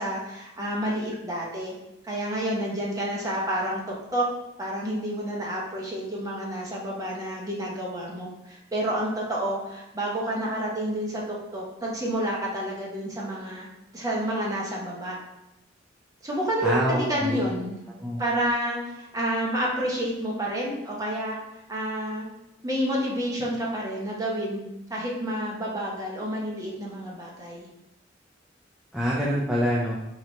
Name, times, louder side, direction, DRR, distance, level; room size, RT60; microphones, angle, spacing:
voice 1, 0.0-1.7 2.0-3.8 4.1-4.3 4.6-11.2 11.5-13.7 13.9-15.2 16.2-17.8 18.2-21.4 21.7-22.3 22.6-27.7, right 1 dB, 20° right, -4 dB, 0.8 m, -29 dB
voice 2, 16.6-17.4 18.0-18.2 28.9-30.0, equal, ahead, -7 dB, 0.4 m, -25 dB
3.9 x 3.0 x 3.1 m, 0.94 s
head